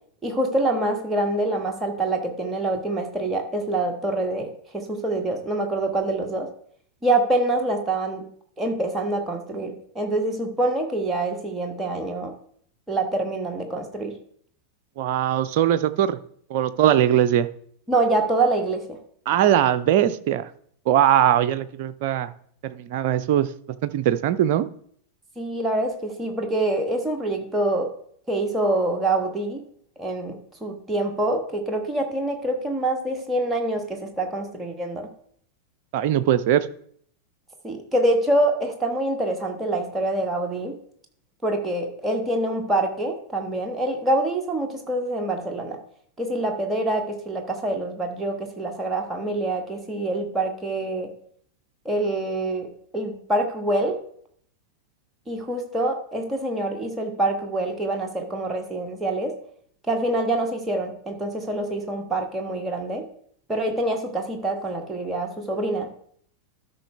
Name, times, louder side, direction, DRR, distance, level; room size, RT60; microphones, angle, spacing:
voice 1, 0.2-6.5 7.0-8.2 8.6-12.3 12.9-14.1 17.9-19.0 25.4-27.9 28.3-29.6 30.0-35.1 37.6-40.7 41.4-45.8 46.2-51.1 51.8-54.0 55.3-59.3 59.9-63.0 63.5-65.9, right 2 dB, 10° right, 2 dB, 1.5 m, -25 dB
voice 2, 15.0-16.2 16.5-17.5 19.3-20.5 20.9-22.3 22.7-23.5 23.8-24.7 35.9-36.7, right 11 dB, 50° right, 12 dB, 0.5 m, -20 dB
13.0 x 5.6 x 3.4 m, 0.62 s
figure-of-eight pair, 90°, 0 cm